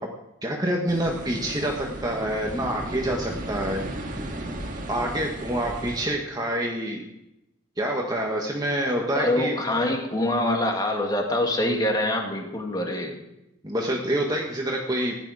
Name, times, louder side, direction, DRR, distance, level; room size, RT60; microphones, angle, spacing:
voice 1, 0.4-3.8 4.9-7.0 7.8-9.5 13.6-15.2, right 1 dB, 20° right, 0 dB, 1.4 m, -27 dB
sound 1, 0.9-6.1, right 1 dB, 40° right, 1.8 m, -35 dB
voice 2, 9.1-13.2, left 1 dB, 20° left, 2 dB, 2.1 m, -25 dB
15.0 x 11.0 x 4.9 m, 0.88 s
head